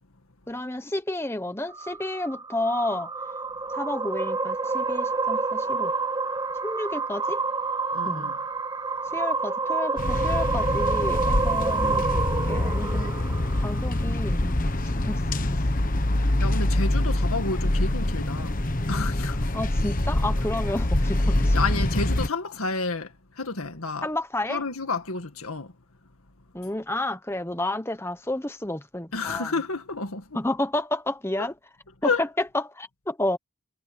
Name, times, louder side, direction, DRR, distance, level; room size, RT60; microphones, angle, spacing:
voice 1, 0.5-3.1 3.7-5.9 6.6-7.4 8.0-8.3 9.1-12.2 12.5-13.1 13.5-15.2 19.5-21.6 24.0-24.6 26.5-29.5 30.3-31.5 32.0-33.4, left 1 dB, 10° left, 1.1 m, -30 dB
sound 1, 1.7-14.2, right 4 dB, 20° right, 1.0 m, -28 dB
voice 2, 7.9-8.4 16.2-18.6 18.9-19.5 21.5-24.1 24.5-25.7 29.1-30.4 31.4-31.5 32.0-32.2, left 3 dB, 75° left, 2.1 m, -30 dB
sound 2, 10.0-22.3, left 1 dB, 40° left, 1.2 m, -25 dB
head